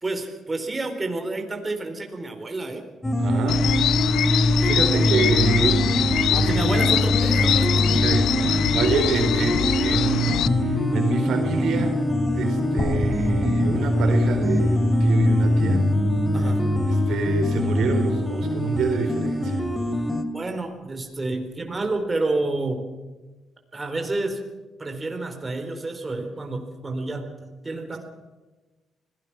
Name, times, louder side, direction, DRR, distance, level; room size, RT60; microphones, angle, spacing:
voice 1, 0.0-2.8 6.3-7.8 16.3-16.6 20.3-22.9 23.7-24.4 24.8-28.0, right 2 dB, 20° right, 4 dB, 4.1 m, -29 dB
sound 1, 3.0-20.2, left 1 dB, 15° left, 2.6 m, -22 dB
voice 2, 3.2-3.6 4.1-5.9 6.3-6.7 7.9-12.0 12.3-15.9 16.9-19.6, right 5 dB, 70° right, 5 dB, 4.1 m, -27 dB
sound 2, 3.5-10.5, left 11 dB, 80° left, 0.7 m, -24 dB
sound 3, 12.8-16.8, left 2 dB, 40° left, 7.4 m, -33 dB
25.5 x 18.0 x 6.1 m, 1.2 s
cardioid pair, 90°, 0 cm